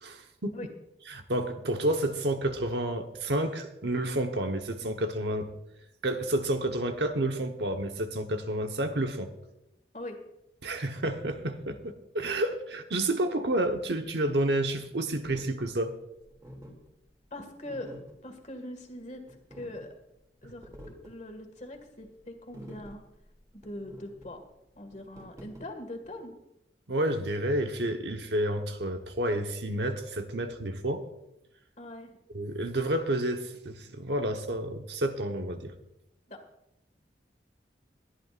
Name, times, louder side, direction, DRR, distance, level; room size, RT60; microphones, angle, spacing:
voice 1, 0.0-0.6 1.1-5.5 6.0-9.3 10.6-15.9 26.9-31.1 32.3-35.7, right 1 dB, 75° right, 5 dB, 1.2 m, -30 dB
sound 1, 15.2-26.2, equal, 20° right, 2.7 m, -50 dB
voice 2, 17.3-17.9 18.2-19.9 20.4-20.7 21.0-23.0 23.5-24.4 24.8-26.3 31.8-32.2 36.3-36.4, left 1 dB, 40° left, 5 dB, 2.0 m, -42 dB
22.0 x 11.0 x 2.5 m, 0.85 s
head